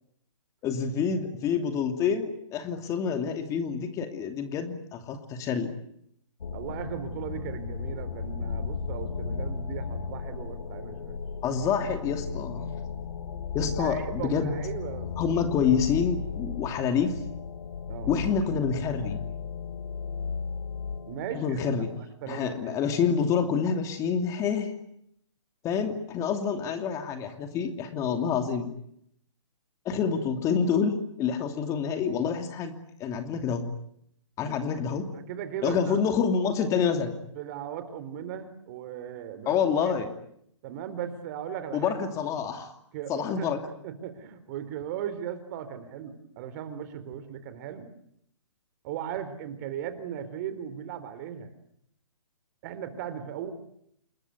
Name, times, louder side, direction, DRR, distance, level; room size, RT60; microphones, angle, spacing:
voice 1, 0.6-5.7 11.4-12.7 13.5-14.6 15.2-17.1 18.1-19.2 21.3-21.9 22.3-24.7 25.6-28.8 29.8-32.7 33.0-33.7 34.4-35.1 35.6-37.1 39.5-40.1 41.7-42.7 43.1-43.6, left 6 dB, 20° left, 6 dB, 2.7 m, -27 dB
sound 1, 6.4-22.0, left 5 dB, 75° left, 2.5 m, -35 dB
voice 2, 6.5-11.2 13.6-15.4 17.9-18.1 21.1-21.7 21.9-22.8 34.4-34.5 35.1-36.0 37.4-39.6 40.0-40.1 40.6-41.9 42.9-43.5 43.8-47.9 48.8-51.5 52.6-53.5, right 9 dB, 35° right, 11 dB, 3.9 m, -37 dB
29.0 x 21.5 x 9.6 m, 0.73 s
hypercardioid pair, 145°, 16 cm